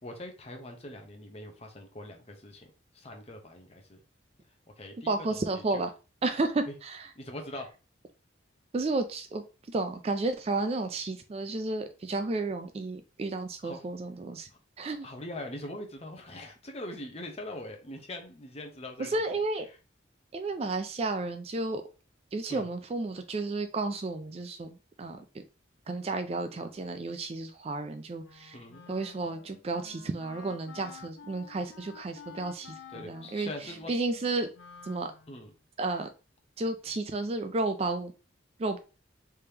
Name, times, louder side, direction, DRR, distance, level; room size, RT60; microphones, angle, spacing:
voice 1, 0.0-4.0 4.8-5.8 6.7-6.8 7.1-7.7 13.6-13.9 14.5-14.6 15.0-19.2 19.7-19.8 22.5-22.7 28.5-28.8 32.9-34.0 35.3-35.5, left 1 dB, 30° left, 3 dB, 0.8 m, -42 dB
voice 2, 5.1-5.9 6.2-7.0 8.7-14.5 14.8-15.1 19.1-19.7 20.3-21.8 22.3-25.4 25.9-28.6 28.9-33.5 33.9-34.5 34.8-35.1 35.8-36.1 36.6-38.1 38.6-38.8, right 2 dB, 30° right, 8 dB, 0.3 m, -32 dB
Wind instrument woodwind instrument, 28.2-35.5, left 6 dB, 75° left, 0.6 m, -51 dB
3.4 x 3.3 x 2.8 m, 0.32 s
head